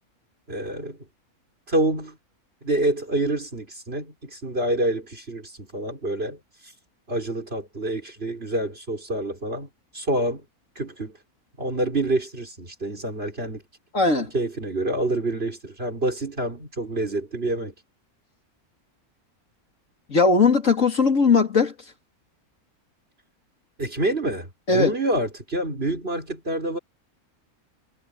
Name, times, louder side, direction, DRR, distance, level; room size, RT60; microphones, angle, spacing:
voice 1, 0.5-1.0 1.7-2.2 2.6-6.4 7.1-9.7 9.9-10.4 10.7-11.2 11.6-13.6 14.3-17.7 23.8-26.8, right 1 dB, 40° right, 4.8 m, -27 dB
voice 2, 13.9-14.3 20.1-21.7 24.7-24.9, left 4 dB, 55° left, 2.9 m, -19 dB
omnidirectional pair, 1.6 m